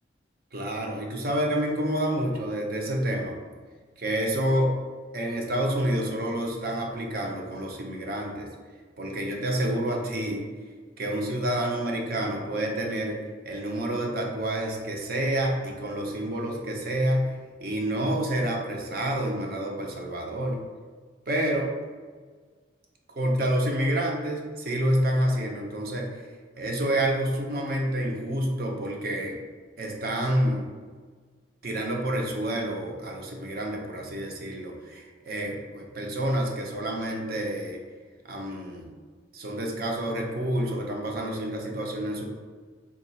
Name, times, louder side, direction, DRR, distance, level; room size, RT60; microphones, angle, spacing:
voice 1, 0.5-3.3 4.0-4.8 5.1-8.5 9.0-10.5 11.0-13.2 13.5-17.3 17.6-20.6 21.3-21.7 23.2-26.1 26.6-29.4 29.8-30.6 31.6-37.8 38.2-38.9 39.3-42.2, right 1 dB, 50° right, 0 dB, 0.6 m, -28 dB
3.7 x 2.3 x 4.1 m, 1.5 s
head